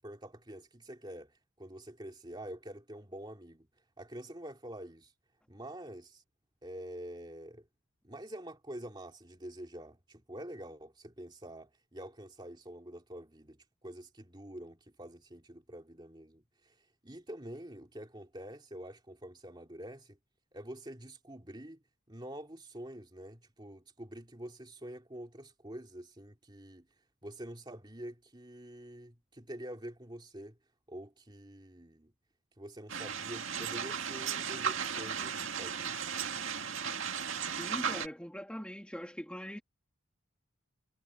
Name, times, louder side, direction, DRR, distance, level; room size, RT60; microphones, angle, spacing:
voice 1, 0.0-3.7 4.0-5.1 5.5-6.2 6.6-7.6 8.0-13.6 13.8-16.7 17.0-20.2 20.5-21.8 22.1-26.9 27.2-30.6 30.9-32.1 32.6-35.9, right 1 dB, 20° right, 2.6 m, -47 dB
sound 1, 32.9-38.1, right 7 dB, 60° right, 2.1 m, -35 dB
voice 2, 37.5-39.6, equal, 5° left, 2.7 m, -42 dB
head